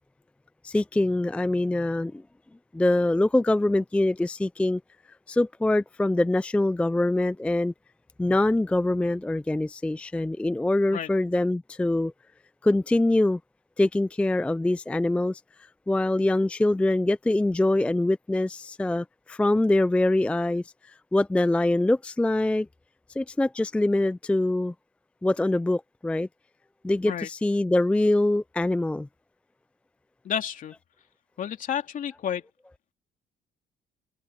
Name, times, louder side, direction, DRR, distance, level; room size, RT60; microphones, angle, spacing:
voice 1, 0.6-2.2 2.7-4.8 5.3-7.7 8.2-12.1 12.6-13.4 13.8-15.4 15.9-20.6 21.1-22.7 23.2-24.7 25.2-26.3 26.8-29.1, left 2 dB, 5° left, 0.4 m, -24 dB
voice 2, 30.2-30.8 31.4-32.4, left 9 dB, 50° left, 3.0 m, -30 dB
open air
cardioid pair, 110°, 17 cm